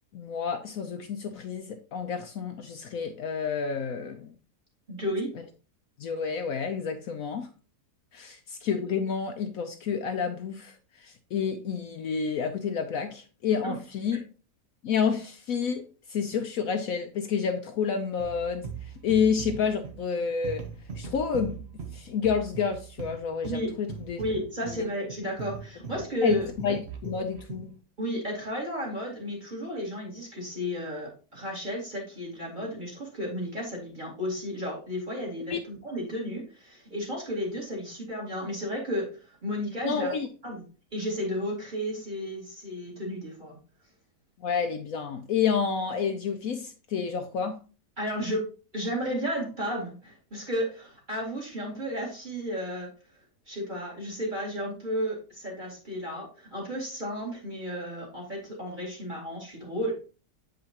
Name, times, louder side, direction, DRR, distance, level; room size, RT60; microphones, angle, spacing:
voice 1, 0.1-4.3 6.0-7.5 8.1-14.2 14.8-18.7 19.0-20.6 21.0-21.6 21.9-24.2 24.7-24.8 26.2-27.7 35.5-35.6 39.8-40.3 44.4-47.6, left 6 dB, 65° left, 1.0 m, -29 dB
voice 2, 4.9-5.3 13.6-13.7 23.4-23.7 24.2-26.5 28.0-40.1 40.4-40.6 40.9-43.6 48.0-52.9 53.5-59.9, equal, 30° right, 2.4 m, -33 dB
sound 1, 18.2-27.8, right 6 dB, 45° right, 1.1 m, -40 dB
7.9 x 5.1 x 2.9 m
omnidirectional pair, 1.7 m